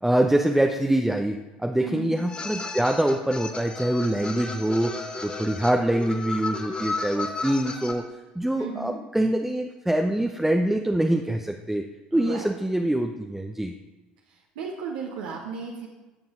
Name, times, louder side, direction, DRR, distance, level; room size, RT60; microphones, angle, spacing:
voice 1, 0.0-8.0 8.4-13.7, right 1 dB, 5° right, 3 dB, 0.7 m, -24 dB
voice 2, 1.8-2.2 8.6-9.0 12.1-12.5 14.3-15.9, right 5 dB, 70° right, -1 dB, 1.2 m, -35 dB
sound 1, 2.2-7.9, left 3 dB, 25° left, 2.3 m, -34 dB
16.5 x 7.1 x 3.8 m, 1.1 s
figure-of-eight pair, 60°, 5 cm